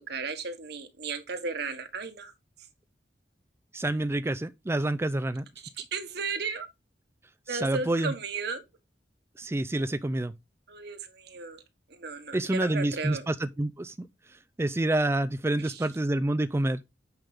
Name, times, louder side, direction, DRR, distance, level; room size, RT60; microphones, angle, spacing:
voice 1, 0.0-2.3 5.6-6.7 7.5-8.6 10.7-11.6 11.9-13.3 15.6-15.9, right 4 dB, 65° right, 1.5 m, -35 dB
voice 2, 3.7-5.4 7.5-8.1 9.4-10.3 12.3-14.1 14.6-16.8, right 1 dB, 15° right, 0.4 m, -28 dB
8.8 x 5.3 x 3.5 m
head